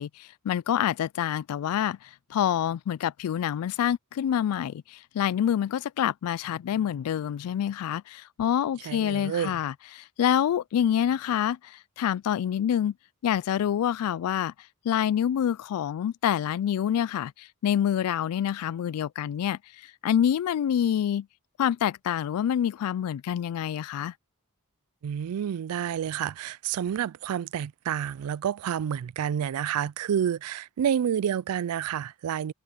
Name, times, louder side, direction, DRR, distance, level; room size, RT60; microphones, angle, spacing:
voice 1, 0.0-2.0 2.3-12.9 13.2-14.5 14.8-19.6 20.0-21.3 21.6-24.1, left 9 dB, 85° left, 0.3 m, -27 dB
voice 2, 8.8-9.6 25.0-32.5, right 9 dB, 85° right, 0.3 m, -29 dB
head